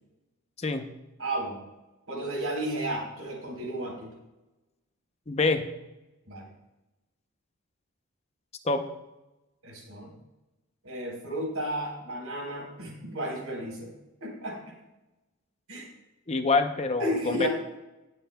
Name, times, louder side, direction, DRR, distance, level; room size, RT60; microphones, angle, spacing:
voice 1, 1.2-1.7 2.1-4.1 6.3-6.5 9.6-10.1 10.8-13.9 14.2-14.6 15.7-15.9 17.0-17.5, right 1 dB, 80° right, -1 dB, 3.7 m, -33 dB
voice 2, 5.3-5.6 8.6-8.8 16.3-17.5, left 3 dB, 30° left, 7 dB, 0.6 m, -26 dB
19.5 x 7.3 x 2.2 m, 1.0 s
head